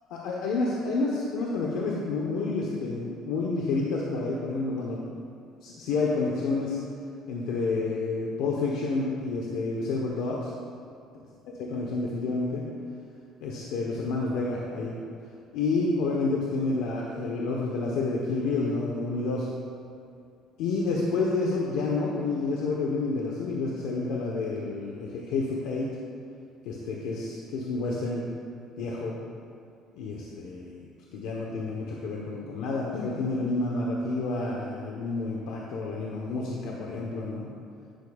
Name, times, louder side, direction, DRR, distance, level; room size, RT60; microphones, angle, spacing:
voice 1, 0.1-5.1 5.6-6.8 7.3-10.5 11.6-12.7 13.4-15.0 15.5-19.5 20.6-25.9 26.6-28.2 28.8-29.2 29.9-30.9 31.1-37.5, left 3 dB, 90° left, -2 dB, 0.9 m, -29 dB
10.5 x 10.0 x 2.3 m, 2.4 s
cardioid pair, 155°, 0 cm